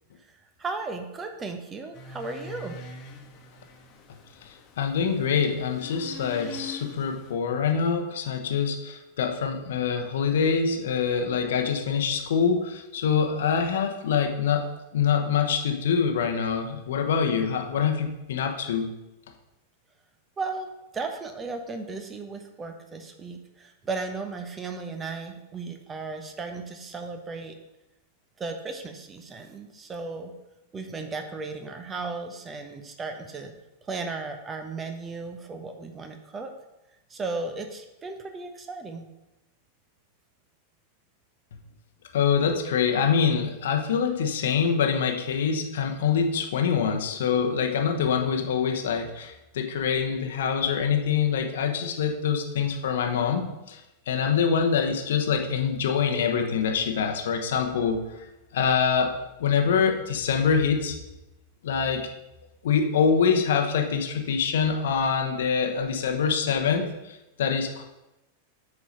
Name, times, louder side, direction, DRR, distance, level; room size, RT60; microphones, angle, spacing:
voice 1, 0.6-2.8 20.4-20.7 20.9-27.6 28.4-30.3 30.7-33.5 33.8-36.5 37.1-39.1, right 3 dB, 20° right, 6 dB, 1.0 m, -35 dB
sound 1, 1.9-7.3, left 3 dB, 35° left, 1.3 m, -43 dB
voice 2, 4.8-14.6 14.9-18.9 42.1-53.8 54.1-58.0 58.5-59.1 59.4-61.0 61.6-62.0 62.6-67.8, left 6 dB, 60° left, 4 dB, 1.0 m, -25 dB
8.5 x 4.8 x 5.3 m, 0.97 s
figure-of-eight pair, 90°, 0 cm